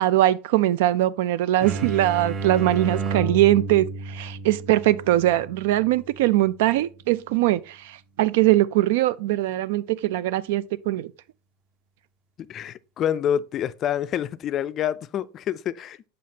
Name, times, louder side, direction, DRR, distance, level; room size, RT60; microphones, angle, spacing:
voice 1, 0.0-11.1, right 14 dB, 75° right, 0.4 m, -21 dB
sound 1, 1.6-7.1, right 4 dB, 25° right, 0.8 m, -32 dB
voice 2, 12.4-16.0, left 10 dB, 35° left, 0.3 m, -27 dB
7.6 x 5.1 x 2.8 m
supercardioid pair, 145°, 0 cm